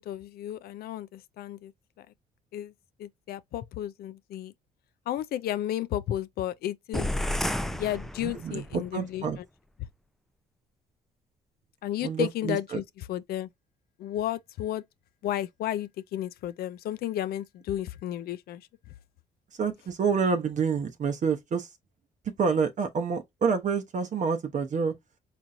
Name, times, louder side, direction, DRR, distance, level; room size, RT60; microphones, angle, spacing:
voice 1, 0.0-1.7 2.0-2.1 2.5-2.7 3.0-4.5 5.1-7.1 7.7-9.2 11.8-12.8 13.1-13.5 14.0-14.8 15.2-18.6, left 12 dB, 65° left, 0.4 m, -33 dB
sound 1, 6.9-8.8, left 1 dB, ahead, 0.4 m, -31 dB
voice 2, 8.2-9.4 12.0-12.8 19.5-21.7 22.2-24.9, right 5 dB, 50° right, 0.8 m, -28 dB
4.1 x 2.9 x 2.5 m
supercardioid pair, 80°, 17 cm